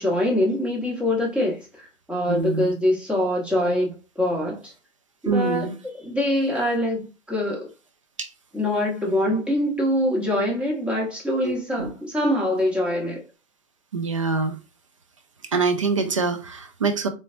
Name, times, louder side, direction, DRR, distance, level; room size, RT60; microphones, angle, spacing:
voice 1, 0.0-4.7 5.2-5.7 6.0-7.7 8.5-13.2, left 1 dB, 5° right, 0.9 m, -24 dB
voice 2, 2.3-2.7 5.2-5.7 8.2-8.3 11.4-11.9 13.9-14.6 15.5-17.1, right 4 dB, 25° right, 0.3 m, -25 dB
4.0 x 3.3 x 2.5 m
figure-of-eight pair, 115°, 39 cm